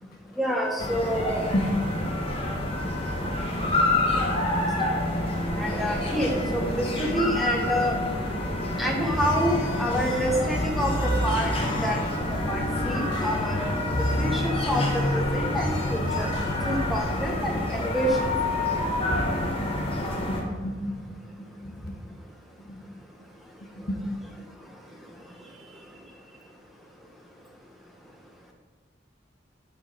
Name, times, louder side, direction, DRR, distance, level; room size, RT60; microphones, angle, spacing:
voice 1, 0.4-1.5 5.6-8.0 8.8-11.5 11.8-12.0 12.5-13.8 14.2-15.0 15.3-16.3 16.7-18.2, equal, ahead, 0 dB, 0.8 m, -27 dB
sound 1, 0.8-20.4, left 1 dB, 30° left, 1.2 m, -28 dB
voice 2, 7.3-7.6 8.1-8.6 14.3-14.5 18.6-21.2 21.6-21.9 22.6-22.8 23.8-24.0, equal, 55° left, 1 dB, 1.4 m, -35 dB
sound 2, 9.0-17.0, equal, 85° left, 1.4 m, -31 dB
9.9 x 4.1 x 5.2 m, 1.6 s
head